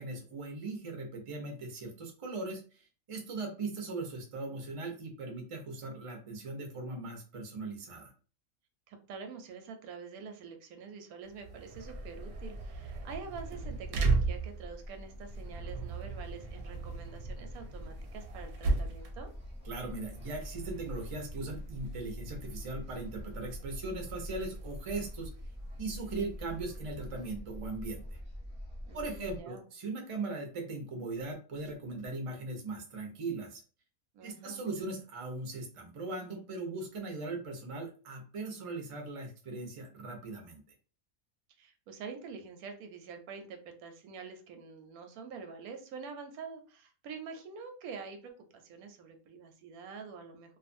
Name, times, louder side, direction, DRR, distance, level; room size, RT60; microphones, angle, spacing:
voice 1, 0.0-8.1 19.6-25.3 25.8-28.2 28.9-33.6 34.2-40.6, right 3 dB, 40° right, 2 dB, 0.4 m, -39 dB
voice 2, 8.9-19.3 28.9-29.7 34.1-34.6 41.6-50.6, right 5 dB, 90° right, 6 dB, 1.1 m, -46 dB
sound 1, 11.2-26.6, right 3 dB, 70° right, 0.8 m, -38 dB
sound 2, 11.8-29.4, equal, 5° right, 0.9 m, -45 dB
2.5 x 2.4 x 2.5 m, 0.38 s
omnidirectional pair, 1.5 m